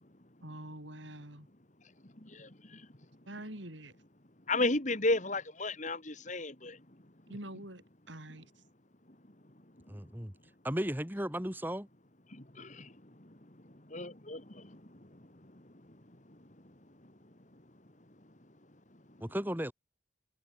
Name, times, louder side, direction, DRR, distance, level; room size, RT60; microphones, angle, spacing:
voice 1, 0.4-1.5 3.3-3.9 7.3-7.8 8.1-8.5, right 1 dB, 70° right, 7.3 m, -45 dB
voice 2, 2.3-2.8 4.5-6.8 12.3-12.9 13.9-14.8, left 2 dB, 40° left, 2.4 m, -33 dB
voice 3, 9.9-10.3 10.6-11.9 19.2-19.7, equal, 10° right, 2.3 m, -35 dB
head